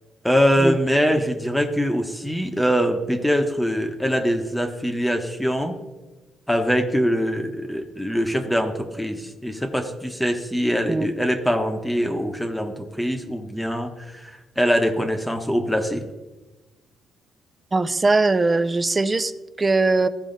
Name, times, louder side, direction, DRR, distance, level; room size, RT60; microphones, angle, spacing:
voice 1, 0.2-5.7 6.5-16.0, equal, 5° left, 4 dB, 1.0 m, -23 dB
voice 2, 17.7-19.3 19.6-20.1, right 3 dB, 25° right, 12 dB, 0.5 m, -20 dB
14.5 x 4.9 x 3.9 m, 1.2 s
cardioid pair, 90°, 0 cm